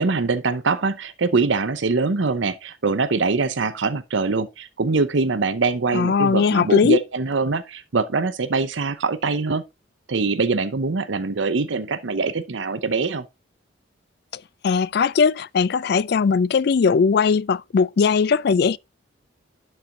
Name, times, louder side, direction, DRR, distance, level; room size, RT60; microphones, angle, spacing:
voice 1, 0.0-9.6 10.1-13.3, right 4 dB, 65° right, 0.7 m, -23 dB
voice 2, 5.9-7.0 14.6-18.8, left 5 dB, 55° left, 0.3 m, -19 dB
11.5 x 4.3 x 3.8 m
head